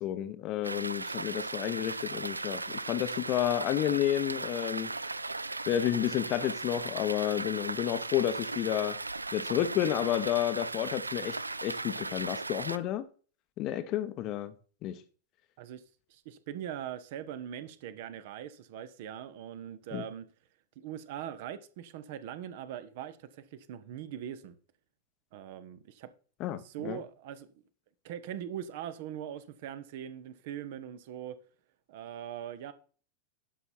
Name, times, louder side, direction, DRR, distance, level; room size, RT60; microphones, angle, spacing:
voice 1, 0.0-4.9 5.7-9.0 9.3-13.0 13.6-14.5 14.8-15.0 19.9-20.0 26.4-27.0, left 12 dB, 40° left, 0.9 m, -31 dB
sound 1, 0.6-12.8, right 3 dB, 80° right, 0.3 m, -37 dB
voice 2, 16.1-20.2 20.8-24.6 25.3-26.1 26.6-27.5 28.0-31.3 31.9-32.7, right 10 dB, 50° right, 1.0 m, -41 dB
11.5 x 5.5 x 4.4 m
figure-of-eight pair, 90°, 0 cm